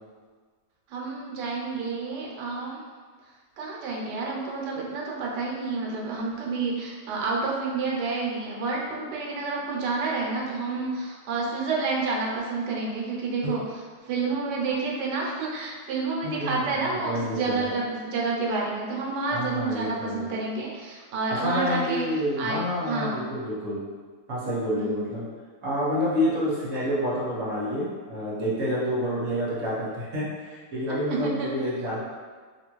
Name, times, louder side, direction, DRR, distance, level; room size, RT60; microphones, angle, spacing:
voice 1, 0.9-2.8 3.6-13.6 14.0-22.0 22.4-22.6 22.8-23.2 24.8-25.0 31.1-31.5, right 3 dB, 85° right, -3 dB, 1.2 m, -29 dB
voice 2, 16.2-17.7 19.3-20.3 21.3-23.8 24.3-25.3 25.6-32.0, equal, 55° right, -7 dB, 1.1 m, -28 dB
2.9 x 2.4 x 3.0 m, 1.5 s
omnidirectional pair, 1.8 m